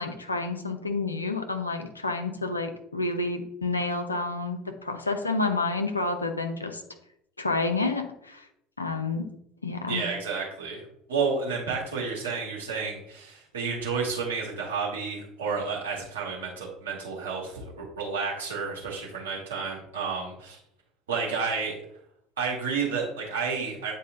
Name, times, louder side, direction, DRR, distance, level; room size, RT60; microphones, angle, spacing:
voice 1, 0.0-6.8 7.4-8.5 8.8-9.3 9.6-10.1, left 3 dB, 85° left, 6 dB, 0.7 m, -29 dB
voice 2, 9.9-10.8 11.1-20.6 21.1-21.8 22.4-23.9, right 5 dB, 70° right, -3 dB, 2.1 m, -31 dB
8.6 x 4.2 x 3.8 m, 0.75 s
figure-of-eight pair, 65°, 0 cm